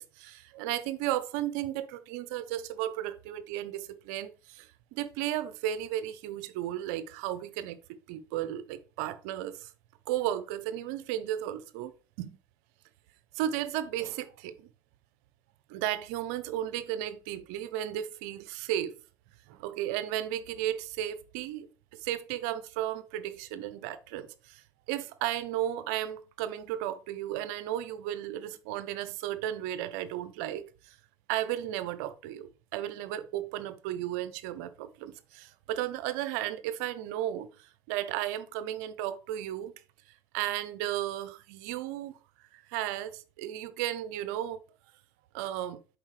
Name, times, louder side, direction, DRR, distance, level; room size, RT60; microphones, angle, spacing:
voice 1, 0.0-9.7 10.1-11.9 12.2-12.4 13.3-14.7 15.7-19.0 19.5-21.7 21.9-31.0 31.3-39.7 40.3-42.2 42.5-44.6 45.3-45.8, right 12 dB, 75° right, 0.5 m, -34 dB
7.2 x 4.9 x 3.2 m
hypercardioid pair, 75°, 9 cm